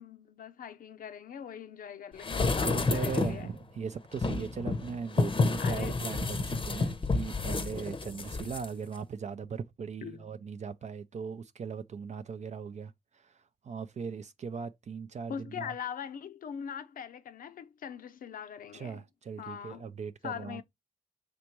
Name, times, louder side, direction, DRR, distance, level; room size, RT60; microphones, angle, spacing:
voice 1, 0.0-3.5 5.6-6.0 10.0-10.3 15.3-19.0 19.4-19.9 20.2-20.6, left 8 dB, 80° left, 0.5 m, -41 dB
sound 1, 2.2-3.5 4.1-8.7 9.0-9.1, left 3 dB, 35° left, 0.6 m, -30 dB
voice 2, 2.6-13.4 13.6-15.7 18.7-20.6, right 6 dB, 55° right, 0.4 m, -39 dB
5.0 x 3.5 x 2.9 m
cardioid pair, 60°, 14 cm